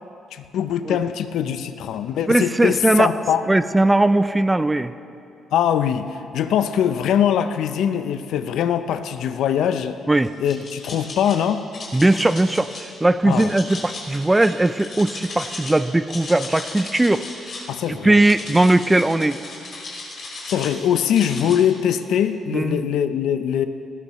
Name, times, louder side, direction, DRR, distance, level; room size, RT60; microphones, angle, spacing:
voice 1, 0.3-3.4 5.5-10.0 10.4-11.7 13.2-13.5 17.7-18.2 20.5-23.7, left 9 dB, 80° left, 10 dB, 0.6 m, -22 dB
voice 2, 2.3-3.1 3.5-4.9 10.1-10.3 11.9-17.2 17.9-19.4 22.5-22.9, right 2 dB, 15° right, 13 dB, 0.4 m, -19 dB
sound 1, 10.2-11.3 11.7-12.8 13.3-15.7 16.0-17.7 18.1-20.8 21.1-21.6, left 3 dB, 55° left, 3.6 m, -36 dB
18.0 x 13.5 x 3.1 m, 2.6 s
cardioid pair, 90°, 0 cm